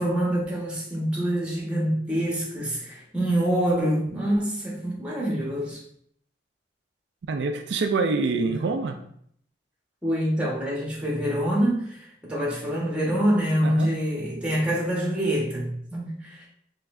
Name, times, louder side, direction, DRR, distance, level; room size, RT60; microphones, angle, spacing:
voice 1, 0.0-5.8 8.5-8.6 10.0-16.5, equal, 5° right, -4 dB, 1.2 m, -26 dB
voice 2, 7.3-9.0 13.6-13.9, right 4 dB, 80° right, 6 dB, 0.4 m, -26 dB
4.7 x 3.2 x 2.5 m, 0.66 s
head